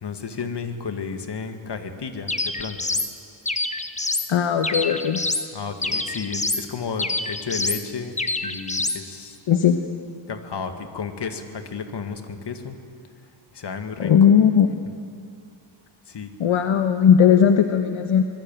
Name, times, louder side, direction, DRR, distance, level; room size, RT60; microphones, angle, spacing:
voice 1, 0.0-2.8 5.5-8.1 8.4-9.4 10.3-12.8 13.5-14.1 16.1-16.3, left 5 dB, 55° left, 7 dB, 2.1 m, -32 dB
sound 1, 2.3-3.1 3.4-4.3 4.6-5.5 5.8-6.6 7.0-7.8 8.2-9.0, left 2 dB, 15° left, 1.0 m, -26 dB
voice 2, 4.3-5.2 9.5-9.8 14.0-14.7 16.4-18.2, left 8 dB, 75° left, 7 dB, 1.2 m, -17 dB
25.0 x 20.5 x 9.1 m, 2.3 s
wide cardioid pair, 140°, 48 cm